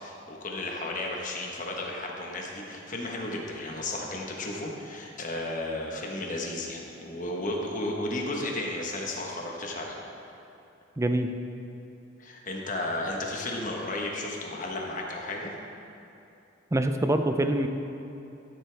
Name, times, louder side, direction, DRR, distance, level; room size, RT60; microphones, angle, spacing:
voice 1, 0.0-10.0 12.2-15.5, left 1 dB, 40° left, 0 dB, 1.2 m, -33 dB
voice 2, 11.0-11.3 16.7-17.7, right 1 dB, 15° right, 7 dB, 0.4 m, -25 dB
13.0 x 7.8 x 3.4 m, 2.8 s
head